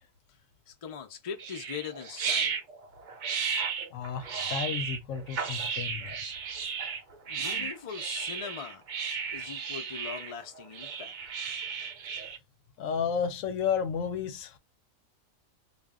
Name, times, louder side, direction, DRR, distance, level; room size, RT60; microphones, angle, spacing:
voice 1, 0.7-2.6 7.3-8.8 9.3-11.1, left 7 dB, 55° left, 0.4 m, -41 dB
sound 1, 1.4-12.4, right 6 dB, 65° right, 0.4 m, -34 dB
voice 2, 3.9-6.2 7.5-7.7 12.8-14.6, left 7 dB, 75° left, 0.9 m, -32 dB
2.4 x 2.1 x 3.5 m
omnidirectional pair, 1.4 m